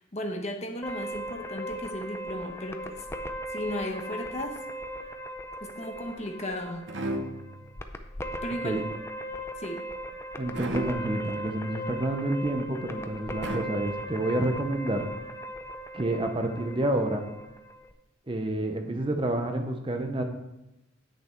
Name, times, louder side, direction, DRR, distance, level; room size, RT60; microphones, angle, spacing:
voice 1, 0.0-3.0 3.5-4.6 5.6-6.9 8.4-8.8 9.6-9.8, left 1 dB, 35° left, 3 dB, 1.0 m, -35 dB
sound 1, 0.8-17.9, right 1 dB, 15° left, 0.4 m, -38 dB
sound 2, 6.9-7.8 10.5-11.3 13.4-14.2, right 1 dB, 60° right, 0.8 m, -34 dB
voice 2, 10.4-15.1 15.9-17.3 18.3-20.2, right 1 dB, 25° right, 5 dB, 0.7 m, -29 dB
8.6 x 6.6 x 4.4 m, 0.93 s
head